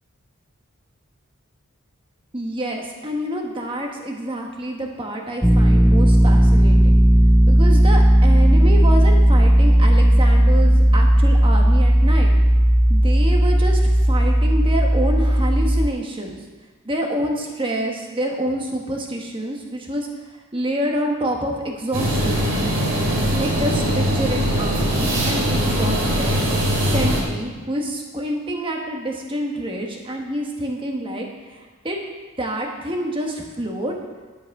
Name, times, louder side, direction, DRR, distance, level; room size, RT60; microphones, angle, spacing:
voice 1, 2.3-6.9 7.5-12.3 12.9-16.4 16.8-20.1 20.5-22.5 23.3-26.4 26.9-32.0 32.4-34.0, right 1 dB, 25° right, 1 dB, 1.4 m, -27 dB
sound 1, 5.4-15.9, equal, ahead, 0.4 m, -14 dB
sound 2, 21.9-27.2, equal, 60° right, 2.5 m, -21 dB
11.0 x 7.8 x 4.8 m, 1.4 s
head